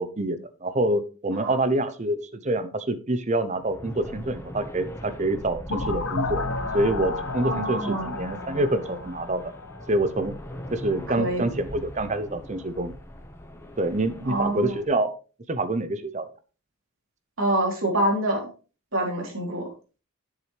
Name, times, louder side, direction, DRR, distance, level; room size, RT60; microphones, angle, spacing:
voice 1, 0.0-6.4 6.7-9.5 9.9-10.3 10.7-12.9 13.8-15.1 15.5-16.3, right 1 dB, 35° right, 12 dB, 0.8 m, -26 dB
sound 1, 3.5-14.9, equal, 10° left, 1.2 m, -40 dB
sound 2, 5.7-10.4, left 3 dB, 90° left, 1.3 m, -32 dB
voice 2, 7.4-8.1 11.2-11.5 14.3-14.8 17.4-18.5 18.9-19.7, right 1 dB, 70° right, 0 dB, 3.5 m, -26 dB
10.5 x 7.5 x 3.3 m, 0.34 s
head